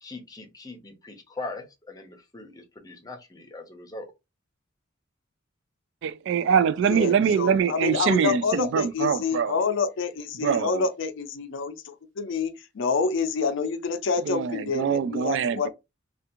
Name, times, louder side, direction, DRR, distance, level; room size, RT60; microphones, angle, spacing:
voice 1, 0.0-4.1, left 2 dB, 20° left, 0.7 m, -40 dB
voice 2, 6.0-9.7 10.4-10.9 14.2-15.7, right 7 dB, 65° right, 0.3 m, -24 dB
voice 3, 6.9-15.7, left 5 dB, 65° left, 0.5 m, -28 dB
3.3 x 2.4 x 2.9 m
head